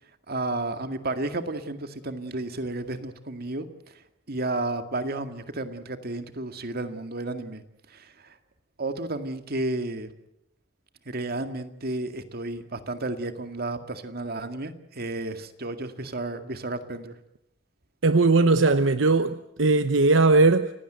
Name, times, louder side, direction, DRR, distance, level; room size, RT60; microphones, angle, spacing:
voice 1, 0.3-3.9 4.3-7.6 7.9-8.3 8.8-10.1 11.1-17.2, right 2 dB, 55° right, 2.0 m, -32 dB
voice 2, 18.0-20.7, right 3 dB, 75° right, 0.9 m, -19 dB
30.0 x 16.5 x 8.0 m
head